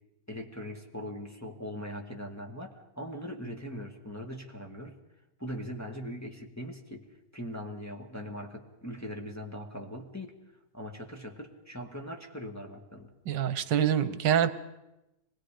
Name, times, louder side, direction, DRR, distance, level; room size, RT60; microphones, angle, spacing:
voice 1, 0.3-5.0 5.4-7.1 7.3-10.3 10.7-13.1, equal, 10° left, 1 dB, 1.7 m, -40 dB
voice 2, 13.3-14.5, right 9 dB, 80° right, 13 dB, 1.5 m, -25 dB
25.5 x 20.5 x 5.0 m, 0.95 s
omnidirectional pair, 1.9 m